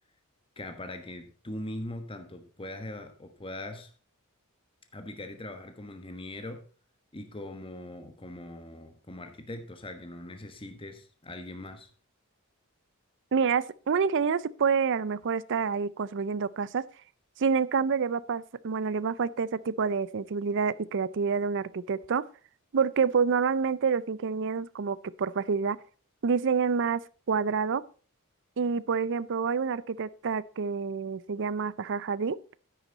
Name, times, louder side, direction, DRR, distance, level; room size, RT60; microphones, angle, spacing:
voice 1, 0.6-3.9 4.9-6.6 7.1-11.9, left 1 dB, 25° left, 1.3 m, -41 dB
voice 2, 13.3-16.8 17.4-22.2 22.7-25.8 26.2-27.0 27.3-27.8 28.6-32.4, right 5 dB, 60° right, 0.5 m, -28 dB
9.9 x 9.0 x 3.9 m
head